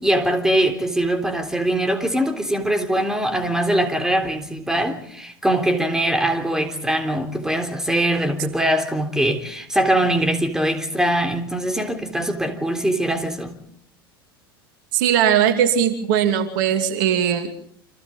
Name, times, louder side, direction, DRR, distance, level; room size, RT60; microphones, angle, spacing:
voice 1, 0.0-13.6, right 1 dB, 5° right, 3.6 m, -22 dB
voice 2, 14.9-17.5, right 9 dB, 55° right, 2.7 m, -19 dB
30.0 x 26.5 x 3.9 m
figure-of-eight pair, 85°, 12 cm